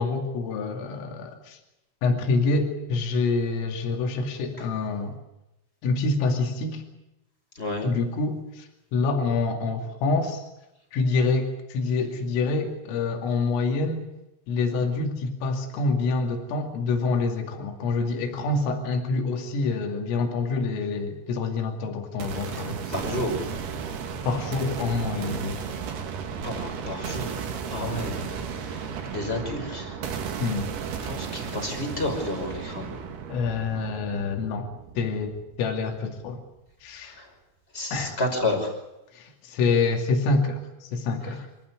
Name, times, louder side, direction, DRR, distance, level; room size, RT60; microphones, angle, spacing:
voice 1, 0.0-1.6 2.0-5.2 5.8-6.8 7.8-10.4 10.9-14.0 14.5-22.9 24.2-25.6 30.4-30.7 33.3-36.4 36.8-37.2 37.9-38.2 39.1-41.5, left 3 dB, 85° left, 3 dB, 5.1 m, -26 dB
voice 2, 7.5-8.0 22.5-22.6 22.9-23.5 26.4-28.3 28.6-30.0 30.3-30.4 31.0-32.9 37.0-37.3 37.7-38.8 41.2-41.3, left 1 dB, 10° left, 3 dB, 5.1 m, -31 dB
sound 1, 22.2-36.1, right 6 dB, 60° right, 3.6 m, -34 dB
27.0 x 14.5 x 9.6 m, 0.93 s
omnidirectional pair, 5.8 m